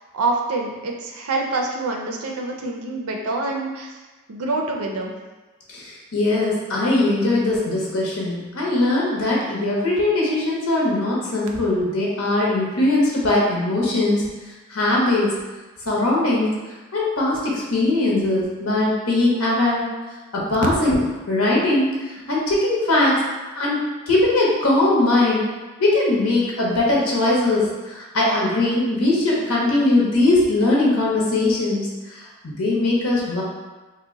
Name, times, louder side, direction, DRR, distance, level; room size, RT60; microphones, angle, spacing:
voice 1, 0.1-3.9 4.3-5.1, right 3 dB, 75° right, 1 dB, 0.4 m, -26 dB
voice 2, 5.7-14.3 14.7-15.3 15.8-16.6 16.9-19.9 20.3-20.9 21.3-22.0 22.3-23.2 23.5-25.5 25.8-33.4, left 2 dB, 80° left, -4 dB, 0.8 m, -20 dB
2.7 x 2.1 x 3.7 m, 1.2 s
head